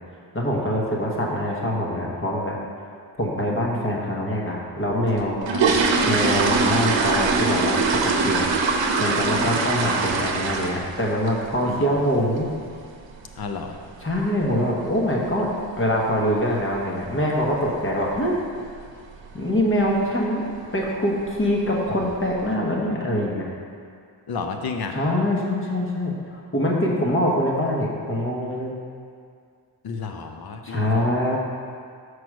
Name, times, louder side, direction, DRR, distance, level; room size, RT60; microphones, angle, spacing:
voice 1, 0.3-2.5 3.2-5.5 6.0-8.5 9.0-12.5 14.0-15.5 15.8-18.4 19.3-20.5 20.7-23.5 24.9-26.1 26.5-28.7 30.6-31.4, equal, 30° left, -2 dB, 1.1 m, -24 dB
sound 1, 5.1-11.0 11.3-11.6 11.9-12.0 12.4-12.5 12.9-13.1 13.4-13.5 14.1-14.2 14.4-14.6 15.1-15.4 15.7-15.8 16.2-16.4 16.7-16.8 17.2-17.3 17.9-18.3 18.6-18.9 19.3-19.4 19.8-19.9 20.6-20.8 21.2-21.7 22.1-22.2, right 4 dB, 85° right, 0.8 m, -22 dB
voice 2, 13.4-13.8 24.3-25.0 29.8-31.4, left 5 dB, 55° left, 5 dB, 0.6 m, -32 dB
6.1 x 4.8 x 6.1 m, 2.2 s
wide cardioid pair, 170°, 44 cm